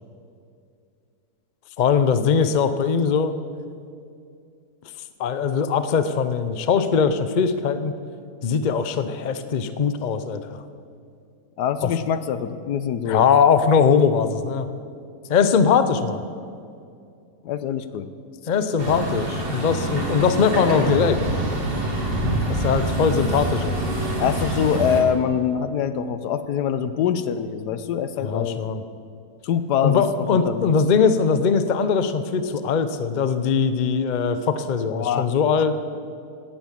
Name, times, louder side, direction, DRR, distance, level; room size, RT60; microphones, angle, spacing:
voice 1, 1.8-3.3 5.2-7.9 8.4-10.6 11.8-11.9 13.1-14.7 15.3-16.2 18.5-21.2 22.5-23.8 28.2-28.8 29.8-35.7, left 6 dB, 45° left, 11 dB, 0.6 m, -21 dB
voice 2, 11.6-13.2 17.4-18.1 24.2-28.6 29.4-30.7 34.9-35.3 35.6-35.7, left 8 dB, 85° left, 12 dB, 1.4 m, -24 dB
Truck, 18.8-25.0, right 1 dB, 35° right, 2.4 m, -25 dB
17.0 x 10.0 x 7.4 m, 2.4 s
omnidirectional pair, 1.7 m